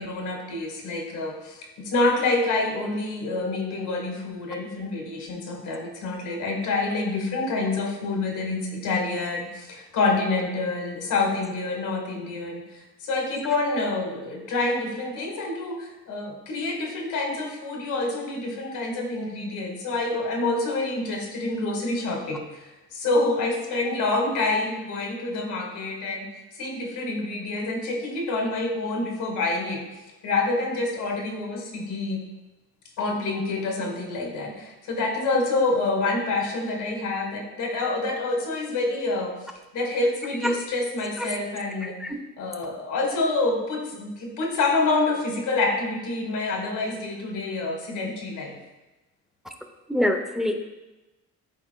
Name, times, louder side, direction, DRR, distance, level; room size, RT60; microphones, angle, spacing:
voice 1, 0.0-26.3 26.5-29.8 30.2-32.3 33.0-39.3 39.7-42.0 42.4-48.6, left 2 dB, 80° left, 1 dB, 1.5 m, -27 dB
voice 2, 41.8-42.2 49.9-50.6, left 1 dB, ahead, 4 dB, 0.7 m, -26 dB
11.0 x 4.2 x 2.2 m, 1.1 s
cardioid pair, 90°, 30 cm